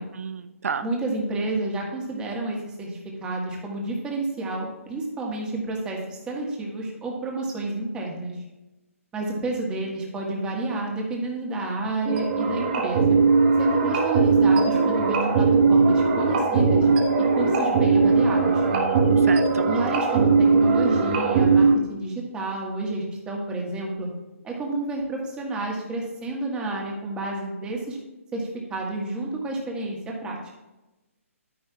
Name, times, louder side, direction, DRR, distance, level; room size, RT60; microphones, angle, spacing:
voice 1, 0.1-0.9 18.7-19.7, right 6 dB, 75° right, 11 dB, 0.5 m, -31 dB
voice 2, 0.8-2.9 3.2-6.0 6.3-8.4 9.1-13.2 13.6-16.9 17.4-18.6 19.7-24.1 24.4-28.0 28.3-30.5, right 2 dB, 10° right, -1 dB, 1.6 m, -30 dB
sound 1, 12.0-21.7, right 4 dB, 40° right, 1.3 m, -19 dB
10.5 x 9.8 x 2.4 m, 1.0 s
hypercardioid pair, 155°, 8 cm